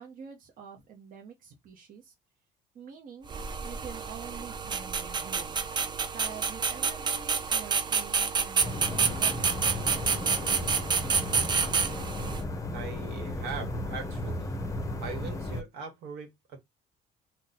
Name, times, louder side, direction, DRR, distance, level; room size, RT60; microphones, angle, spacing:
voice 1, 0.0-2.1 2.7-3.3 3.6-5.6 6.1-11.1, right 6 dB, 55° right, 0.9 m, -46 dB
sound 1, 3.3-12.4, right 5 dB, 25° right, 0.4 m, -29 dB
sound 2, 8.6-15.6, left 1 dB, 20° left, 0.7 m, -35 dB
voice 2, 12.7-14.5 15.0-16.6, right 4 dB, 75° right, 1.2 m, -40 dB
2.6 x 2.2 x 3.9 m
cardioid pair, 110°, 17 cm